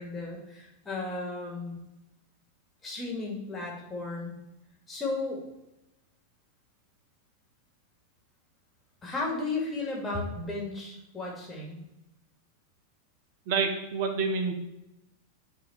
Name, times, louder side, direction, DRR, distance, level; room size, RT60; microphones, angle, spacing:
voice 1, 0.0-1.8 2.8-4.3 4.9-5.4 9.0-11.8, left 3 dB, 15° left, -2 dB, 2.2 m, -34 dB
voice 2, 13.5-14.5, right 4 dB, 50° right, 5 dB, 1.1 m, -28 dB
9.2 x 3.6 x 4.7 m, 0.91 s
figure-of-eight pair, 90°, 0 cm